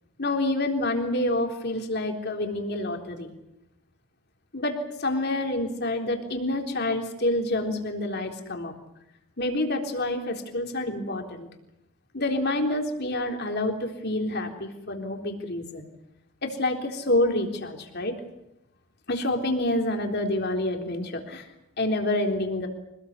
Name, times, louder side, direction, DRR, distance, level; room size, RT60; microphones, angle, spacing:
voice 1, 0.2-3.3 4.5-8.7 9.4-11.5 12.1-15.9 16.4-18.2 19.1-21.4 21.8-22.7, left 1 dB, 50° left, 4 dB, 3.7 m, -27 dB
26.0 x 19.5 x 8.5 m, 0.84 s
head